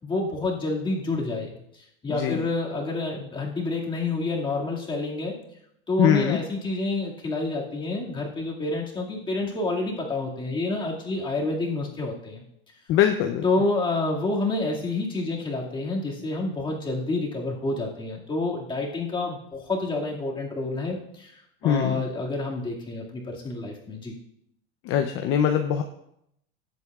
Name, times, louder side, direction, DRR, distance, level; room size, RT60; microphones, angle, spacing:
voice 1, 0.0-5.4 5.9-12.4 13.4-24.1, left 2 dB, 15° left, -2 dB, 2.2 m, -28 dB
voice 2, 2.1-2.5 6.0-6.4 12.9-13.4 21.6-22.1 24.8-25.8, left 9 dB, 40° left, 6 dB, 0.7 m, -22 dB
18.0 x 7.9 x 2.4 m, 0.77 s
supercardioid pair, 140°, 32 cm